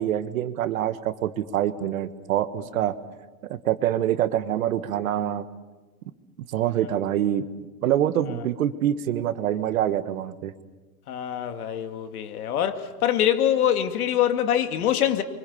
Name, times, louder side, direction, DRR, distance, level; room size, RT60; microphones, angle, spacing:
voice 1, 0.0-2.9 3.5-5.4 6.5-7.4 7.8-10.5, right 11 dB, 60° right, 1.6 m, -25 dB
voice 2, 11.1-15.2, left 10 dB, 70° left, 2.4 m, -24 dB
28.0 x 25.0 x 7.0 m
supercardioid pair, 180°, 46 cm